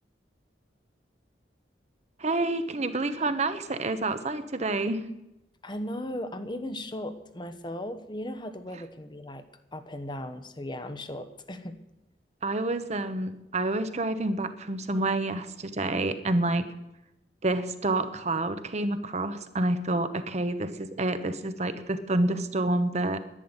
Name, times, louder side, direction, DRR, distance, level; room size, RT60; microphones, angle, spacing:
voice 1, 2.2-5.0 12.4-16.7 17.4-23.2, right 2 dB, 40° right, 10 dB, 1.0 m, -28 dB
voice 2, 5.6-9.4 9.7-11.8, left 1 dB, 25° left, 9 dB, 1.1 m, -37 dB
11.0 x 10.5 x 9.7 m, 0.90 s
head